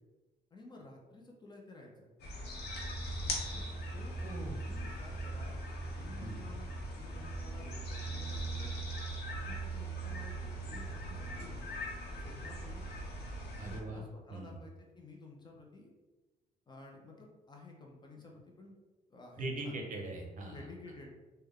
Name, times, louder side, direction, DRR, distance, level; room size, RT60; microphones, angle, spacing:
voice 1, 0.5-2.1 3.5-4.2 4.6-5.6 6.0-8.7 9.4-11.8 12.1-12.9 13.5-15.9 16.7-18.8 19.1-19.8 20.5-21.1, left 2 dB, 25° left, 0 dB, 0.6 m, -53 dB
sound 1, 2.2-13.8, right 1 dB, 75° left, 0.9 m, -40 dB
voice 2, 4.2-4.6 6.2-6.4 13.6-14.0 14.3-14.6 19.4-20.7, right 2 dB, 50° right, 1 dB, 0.7 m, -41 dB
3.3 x 2.2 x 3.5 m, 1.2 s
cardioid pair, 130°, 17 cm